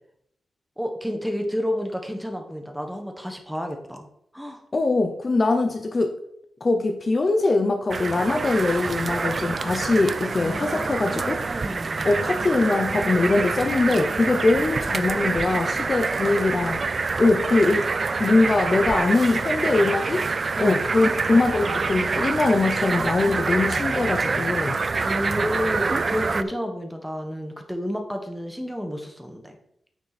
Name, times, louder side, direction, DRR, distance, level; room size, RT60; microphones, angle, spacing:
voice 1, 0.8-4.1 4.3-4.6 10.4-12.1 14.6-14.7 20.6-20.8 25.0-29.6, equal, ahead, 4 dB, 1.3 m, -30 dB
voice 2, 4.7-6.2 6.6-11.4 12.0-16.8 17.2-17.9 18.2-20.3 20.6-24.8, left 3 dB, 35° left, 5 dB, 0.7 m, -22 dB
sound 1, 7.9-26.4, right 4 dB, 40° right, 0.4 m, -26 dB
8.9 x 6.1 x 4.2 m, 0.71 s
wide cardioid pair, 115°, 0 cm